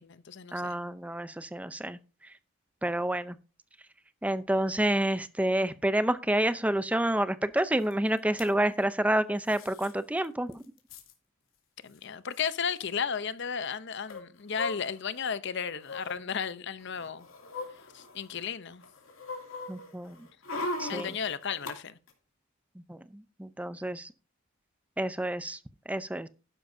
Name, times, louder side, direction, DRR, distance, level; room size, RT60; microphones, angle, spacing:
voice 1, 0.0-0.8 11.8-17.3 17.9-18.8 20.9-22.0, left 6 dB, 55° left, 0.7 m, -34 dB
voice 2, 0.5-2.0 2.8-3.4 4.2-10.6 19.7-20.2 20.8-21.1 22.9-24.1 25.0-25.6 25.9-26.3, right 1 dB, 5° right, 0.6 m, -29 dB
sound 1, 7.9-8.0 8.2-8.5 9.5-9.9 10.2-10.3 10.5-11.1 12.0-12.1 12.3-12.5 14.1-15.2 15.8-16.2 16.8-18.4 18.8-21.7 22.1-22.2, left 2 dB, 80° left, 2.6 m, -39 dB
12.0 x 10.5 x 2.7 m
head